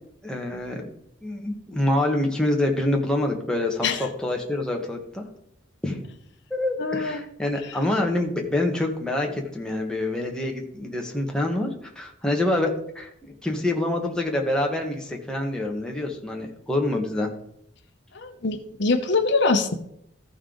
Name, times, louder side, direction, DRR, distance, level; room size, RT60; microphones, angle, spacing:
voice 1, 0.2-0.9 1.2-5.2 5.8-6.0 6.5-11.7 11.9-17.3, left 1 dB, 5° left, 0 dB, 1.3 m, -26 dB
voice 2, 6.8-7.2 18.1-19.8, left 3 dB, 60° left, 6 dB, 0.9 m, -23 dB
14.5 x 5.4 x 3.9 m, 0.73 s
head